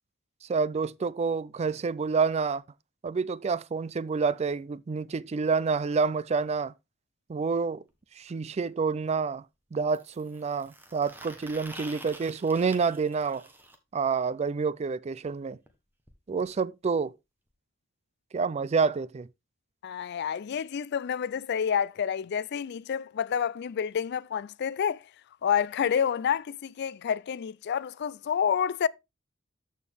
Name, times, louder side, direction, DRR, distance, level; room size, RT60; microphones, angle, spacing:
voice 1, 0.5-2.6 3.0-6.7 7.3-7.8 8.2-9.4 9.7-13.5 13.9-15.6 16.3-17.1 18.3-19.3, right 5 dB, 30° right, 0.3 m, -28 dB
sound 1, 7.9-8.0 9.9-13.7 15.7-15.8 16.1-16.2 16.4-16.5 17.5-17.6, right 1 dB, 10° right, 1.2 m, -47 dB
voice 2, 19.8-25.0 25.4-28.9, left 8 dB, 55° left, 0.4 m, -29 dB
13.0 x 4.5 x 3.4 m
head